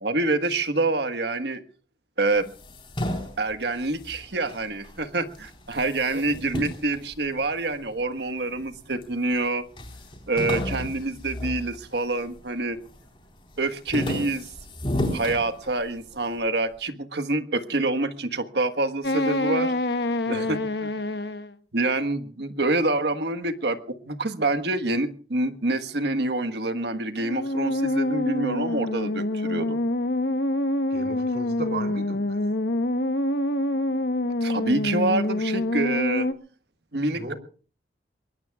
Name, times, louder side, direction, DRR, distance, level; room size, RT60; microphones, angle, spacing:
voice 1, 0.0-1.6 2.2-2.5 3.4-9.6 10.3-12.8 13.6-14.5 15.1-19.7 20.3-20.9 21.7-29.8 34.4-36.3 36.9-37.3, right 2 dB, 75° right, 8 dB, 1.5 m, -26 dB
sound 1, 2.4-5.0 5.3-7.8 8.4-9.1 9.4-9.5 9.8-12.4 12.7-13.2 13.5-16.1, left 1 dB, 30° left, 4.0 m, -33 dB
sound 2, 19.0-21.5 27.2-36.3, left 1 dB, 70° left, 1.0 m, -26 dB
voice 2, 20.3-20.6 30.9-32.4 37.1-37.3, right 2 dB, 55° right, 4 dB, 3.3 m, -35 dB
25.0 x 22.5 x 2.4 m, 0.40 s
head